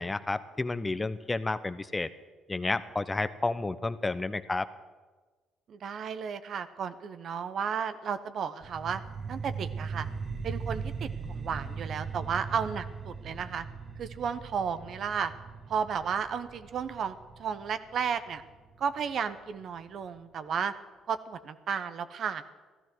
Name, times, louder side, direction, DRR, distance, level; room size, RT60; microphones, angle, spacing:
voice 1, 0.0-2.1 2.5-4.7, left 3 dB, 25° left, 14 dB, 0.9 m, -31 dB
voice 2, 5.7-9.0 9.3-10.1 10.4-13.6 14.0-15.3 15.7-18.4 18.8-20.7 21.1-22.4, right 7 dB, 60° right, 11 dB, 0.9 m, -33 dB
sound 1, 8.6-19.6, right 5 dB, 40° right, 1.4 m, -40 dB
15.0 x 13.5 x 6.3 m, 1.3 s
hypercardioid pair, 50°, 0 cm